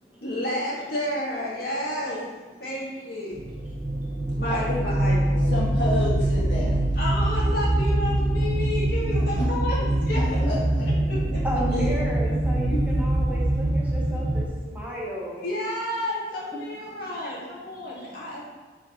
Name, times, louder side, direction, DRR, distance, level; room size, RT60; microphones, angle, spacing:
voice 1, 0.2-2.2 2.6-3.4 4.3-5.5 7.0-10.4 10.8-11.4 11.7-11.9 12.7-12.8 15.4-18.4, left 1 dB, 55° left, -6 dB, 1.9 m, -31 dB
sound 1, 3.3-14.5, right 1 dB, 45° right, 0.7 m, -24 dB
voice 2, 3.9-4.4 11.4-15.4 16.9-17.4 17.7-18.4, equal, 10° right, -5 dB, 1.1 m, -34 dB
voice 3, 4.5-4.8 5.4-6.8 9.1-9.5 10.4-10.8, left 1 dB, 85° left, -7 dB, 1.8 m, -30 dB
5.0 x 3.9 x 5.4 m, 1.3 s
head